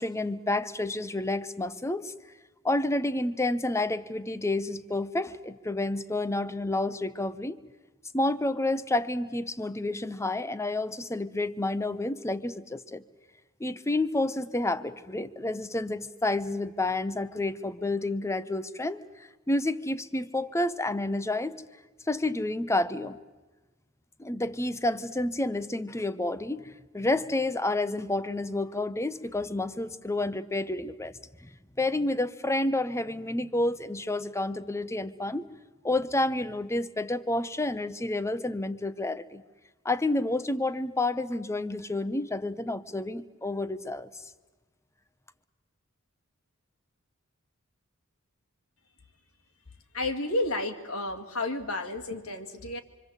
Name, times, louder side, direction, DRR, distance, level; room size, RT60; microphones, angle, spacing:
voice 1, 0.0-2.1 2.6-7.6 8.1-13.0 13.6-19.0 19.5-21.6 22.1-23.2 24.2-31.1 31.4-31.5 31.8-35.4 35.8-39.4 39.8-44.1, left 2 dB, 15° left, 13 dB, 0.8 m, -29 dB
voice 2, 49.9-52.8, left 2 dB, 90° left, 5 dB, 2.3 m, -31 dB
26.5 x 24.0 x 8.2 m, 1.2 s
head